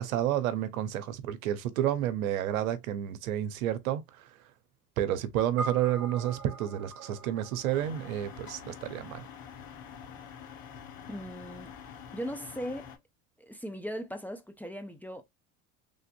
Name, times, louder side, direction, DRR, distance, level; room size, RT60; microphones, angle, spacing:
voice 1, 0.0-4.3 5.0-9.3, right 11 dB, 90° right, 0.7 m, -30 dB
sound 1, 5.6-10.1, right 2 dB, 40° right, 1.3 m, -43 dB
sound 2, 7.7-13.0, left 8 dB, 55° left, 1.2 m, -46 dB
voice 2, 11.1-13.0 13.4-15.2, equal, 5° left, 0.5 m, -39 dB
3.4 x 2.5 x 2.5 m
supercardioid pair, 85°, 41 cm